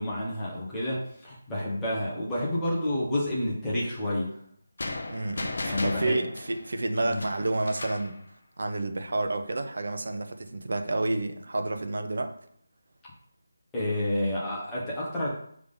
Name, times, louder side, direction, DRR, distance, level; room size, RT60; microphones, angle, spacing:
voice 1, 0.0-4.3 5.6-6.2 7.0-7.2 13.7-15.3, left 1 dB, 5° left, -8 dB, 1.1 m, -29 dB
sound 1, 4.8-8.1, left 2 dB, 50° left, 0.9 m, -36 dB
voice 2, 5.1-8.1 8.6-12.3, right 2 dB, 55° right, 7 dB, 0.8 m, -30 dB
5.8 x 3.6 x 5.4 m, 0.65 s
figure-of-eight pair, 175°, 0 cm